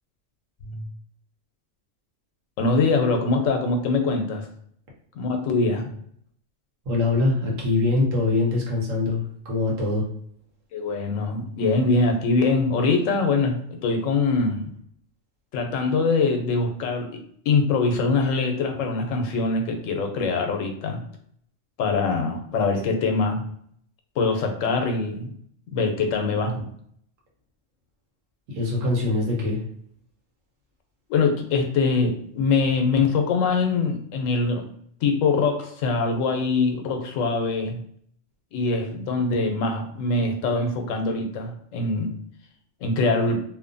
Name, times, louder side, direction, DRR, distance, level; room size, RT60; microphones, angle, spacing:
voice 1, 2.6-4.5 5.1-5.9 10.7-14.6 15.5-17.1 17.5-21.0 21.8-23.4 24.2-25.3 25.7-26.7 31.1-34.7 35.0-37.8 38.5-42.1 42.8-43.4, left 3 dB, 85° left, 4 dB, 1.0 m, -23 dB
voice 2, 6.9-10.0 28.5-29.6, left 2 dB, 80° right, -2 dB, 1.3 m, -23 dB
2.9 x 2.1 x 2.5 m, 0.65 s
omnidirectional pair, 1.3 m